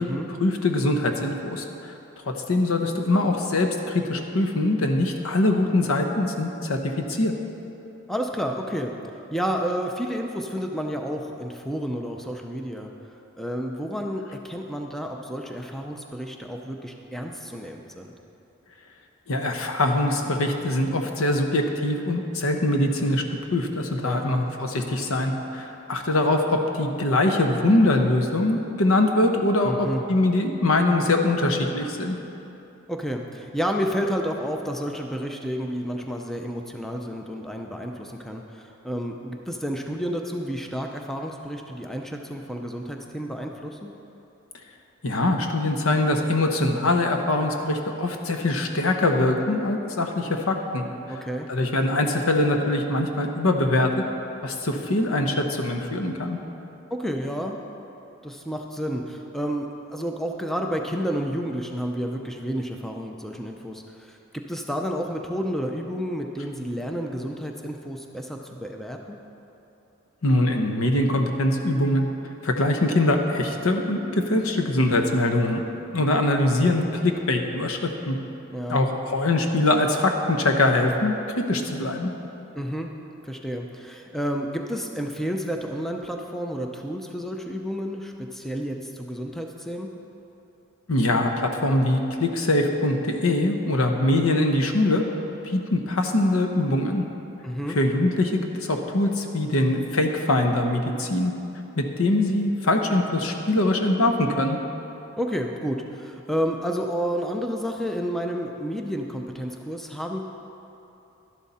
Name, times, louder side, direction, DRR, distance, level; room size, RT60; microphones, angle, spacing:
voice 1, 0.4-1.9 2.3-7.3 19.3-23.2 23.5-32.2 45.0-50.8 51.5-54.0 54.4-56.4 70.2-72.1 72.4-75.6 75.9-78.2 78.7-82.1 90.9-95.0 95.4-97.0 97.7-101.3 101.8-104.6, left 2 dB, 90° left, 4 dB, 1.0 m, -23 dB
voice 2, 8.1-8.9 9.3-12.9 13.4-18.1 24.0-24.3 29.6-30.0 32.9-43.9 51.1-51.5 56.9-57.6 58.2-69.2 78.5-78.9 82.6-82.9 83.2-89.9 97.4-97.8 105.2-110.2, equal, ahead, 2 dB, 0.6 m, -30 dB
12.0 x 11.0 x 4.2 m, 2.9 s
head